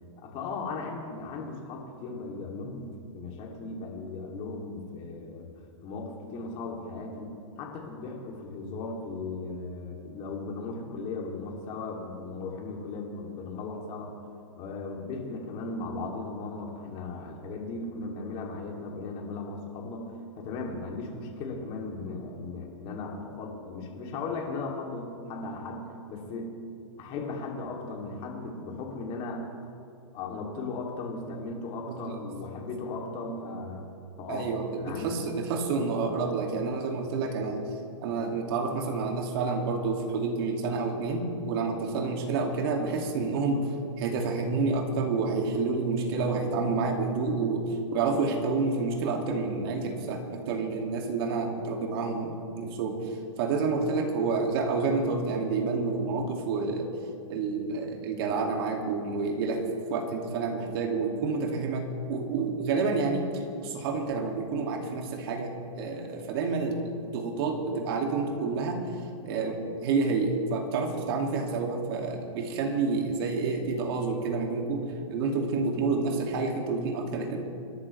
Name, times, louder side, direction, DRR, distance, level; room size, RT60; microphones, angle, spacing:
voice 1, 0.2-2.9 3.1-5.5 5.8-14.1 14.6-26.5 27.0-29.4 30.1-33.9 34.2-34.5 34.8-35.1, left 3 dB, 35° left, 0 dB, 2.8 m, -37 dB
voice 2, 34.3-37.6 38.0-56.9 57.3-59.6 59.9-68.8 69.2-77.4, right 4 dB, 50° right, 2 dB, 2.3 m, -29 dB
27.0 x 11.5 x 3.3 m, 2.6 s
hypercardioid pair, 140°, 17 cm